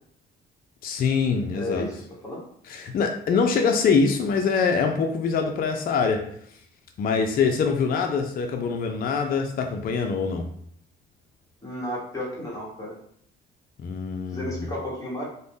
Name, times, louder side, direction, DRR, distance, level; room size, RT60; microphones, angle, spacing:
voice 1, 0.8-1.9 2.7-6.2 7.0-10.4 13.8-14.6, left 5 dB, 50° left, 3 dB, 0.4 m, -24 dB
voice 2, 1.5-1.9 2.2-2.4 11.6-12.9 14.3-15.2, left 1 dB, 15° left, -6 dB, 1.3 m, -32 dB
2.5 x 2.1 x 3.4 m, 0.66 s
cardioid pair, 90°, 20 cm